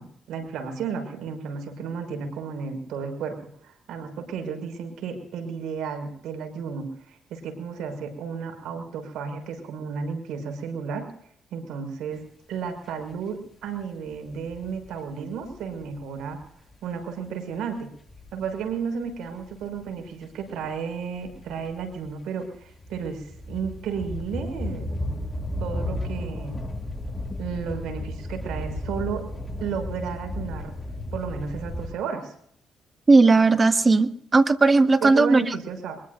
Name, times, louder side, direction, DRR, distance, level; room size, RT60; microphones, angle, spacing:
voice 1, 0.0-3.4 3.6-11.1 11.5-12.2 12.5-16.4 16.8-17.9 18.3-24.9 25.6-26.6 27.4-29.2 29.6-30.7 31.1-32.3 35.0-36.0, right 6 dB, 85° right, 5 dB, 5.8 m, -33 dB
sound 1, 13.0-13.1 13.7-15.1 15.4-16.7 18.1-18.8 19.0-22.1 22.5-31.9, left 1 dB, 20° left, 2.5 m, -34 dB
voice 2, 33.1-35.4, right 3 dB, 30° right, 8 dB, 1.5 m, -17 dB
24.0 x 22.0 x 2.6 m, 0.68 s
cardioid pair, 90°, 0 cm